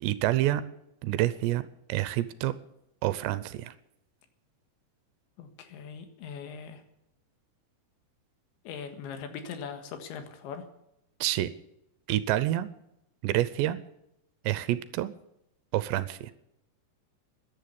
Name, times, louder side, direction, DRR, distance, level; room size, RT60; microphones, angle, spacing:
voice 1, 0.0-0.6 1.0-1.6 1.9-2.5 3.0-3.7 11.2-11.5 12.1-12.7 13.2-13.8 14.5-15.1 15.7-16.3, right 14 dB, 80° right, 15 dB, 2.8 m, -27 dB
voice 2, 5.4-6.8 8.7-10.7, left 6 dB, 80° left, 7 dB, 3.9 m, -40 dB
14.5 x 10.5 x 8.5 m, 0.84 s
omnidirectional pair, 5.3 m